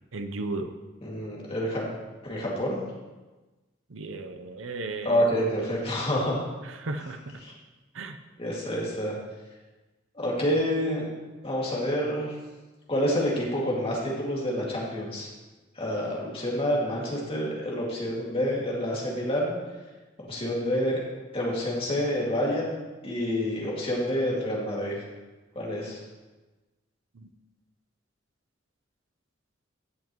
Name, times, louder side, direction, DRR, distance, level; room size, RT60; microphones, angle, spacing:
voice 1, 0.1-0.7 3.9-5.3 6.6-7.2 7.9-8.2 27.1-27.3, right 2 dB, 90° right, 7 dB, 0.7 m, -35 dB
voice 2, 1.0-1.8 2.2-2.8 5.0-6.4 7.4-7.5 8.4-9.1 10.1-11.0 11.4-12.4 12.9-15.3 15.8-19.5 20.3-21.0 21.3-22.8 23.0-25.0 25.6-26.0, equal, 30° left, -4 dB, 2.3 m, -28 dB
15.5 x 7.2 x 3.1 m, 1.2 s
head